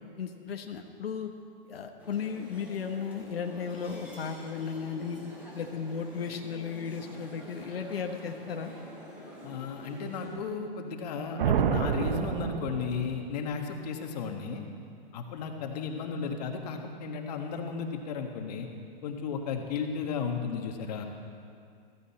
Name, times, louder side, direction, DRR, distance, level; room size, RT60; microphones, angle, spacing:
voice 1, 0.2-1.3 1.6-5.2 5.5-8.7, left 6 dB, 90° left, 4 dB, 1.2 m, -35 dB
sound 1, 2.0-10.3, equal, 5° right, 3.3 m, -47 dB
voice 2, 9.4-14.6 15.1-18.7 19.0-21.0, left 5 dB, 45° left, 4 dB, 1.6 m, -34 dB
sound 2, 11.4-13.4, right 8 dB, 65° right, 0.8 m, -28 dB
15.5 x 15.0 x 4.3 m, 2.3 s
hypercardioid pair, 155°, 29 cm